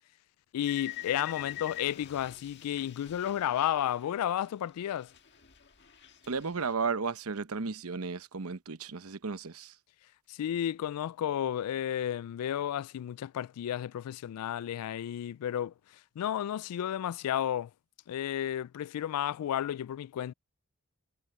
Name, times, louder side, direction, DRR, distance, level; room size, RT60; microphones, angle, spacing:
voice 1, 0.5-5.1 10.3-15.7 16.2-17.7 18.1-20.3, left 10 dB, 90° left, 0.3 m, -32 dB
sound 1, 0.7-4.6 4.9-6.7, left 13 dB, 50° left, 1.7 m, -45 dB
voice 2, 6.3-9.7, right 4 dB, 75° right, 0.9 m, -34 dB
head